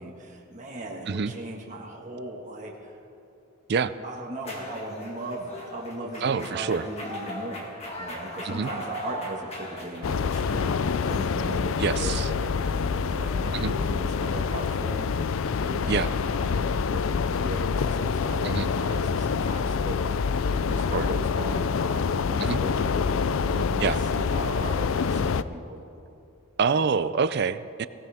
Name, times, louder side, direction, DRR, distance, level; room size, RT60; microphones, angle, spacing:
voice 1, 0.0-2.9 4.0-7.7 8.0-12.7 12.9-15.1 15.6-20.0 20.5-22.9 23.4-25.8, right 1 dB, 35° right, -1 dB, 1.7 m, -38 dB
sound 1, 4.4-16.4, equal, 30° left, 2.2 m, -41 dB
voice 2, 6.2-6.8 8.4-8.7 11.8-12.3 13.5-13.7 15.9-16.1 18.4-18.7 20.9-21.1 22.4-22.6 23.8-24.0 26.6-27.9, right 5 dB, 50° right, 14 dB, 0.4 m, -26 dB
sound 2, 10.0-25.4, left 5 dB, 65° left, 0.4 m, -26 dB
20.5 x 18.0 x 3.6 m, 2.7 s
head